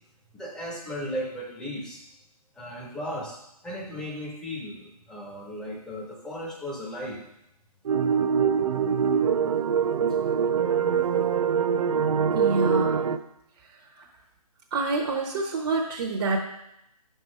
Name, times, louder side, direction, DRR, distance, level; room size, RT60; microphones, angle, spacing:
voice 1, 0.3-2.0 2.6-3.4 3.6-7.2, equal, 5° left, -2 dB, 0.9 m, -36 dB
sound 1, 7.8-13.2, right 7 dB, 65° right, 0.5 m, -24 dB
voice 2, 12.3-12.9 14.0-14.1 14.7-16.4, right 3 dB, 45° right, 0 dB, 0.9 m, -27 dB
5.9 x 5.6 x 4.7 m, 0.81 s
hypercardioid pair, 145°, 20 cm